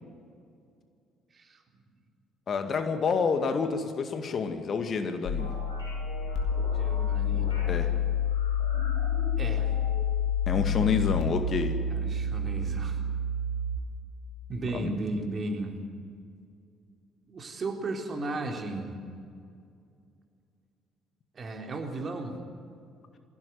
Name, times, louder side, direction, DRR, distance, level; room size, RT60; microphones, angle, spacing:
voice 1, 2.5-5.5 7.7-7.9 10.5-11.8 14.8-14.9, left 5 dB, 45° left, 7 dB, 2.0 m, -28 dB
sound 1, 5.2-13.8, left 5 dB, 70° left, 2.6 m, -28 dB
sound 2, 5.4-7.7 8.2-10.1 10.4-11.0, left 1 dB, 85° left, 5.9 m, -43 dB
voice 2, 6.7-7.6 9.4-9.7 11.9-13.0 14.5-15.8 17.3-18.9 21.3-22.4, right 2 dB, 40° right, 3 dB, 3.7 m, -35 dB
22.5 x 16.5 x 9.4 m, 2.3 s
hypercardioid pair, 50°, 0 cm